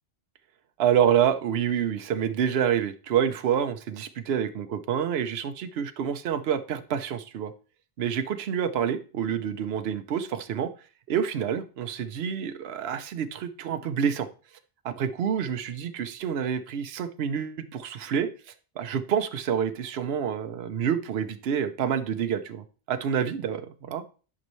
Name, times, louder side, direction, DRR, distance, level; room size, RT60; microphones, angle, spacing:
voice 1, 0.8-7.5 8.0-10.7 11.1-14.3 14.8-24.0, right 8 dB, 75° right, 10 dB, 0.9 m, -28 dB
11.5 x 5.4 x 3.1 m, 0.37 s
omnidirectional pair, 1.1 m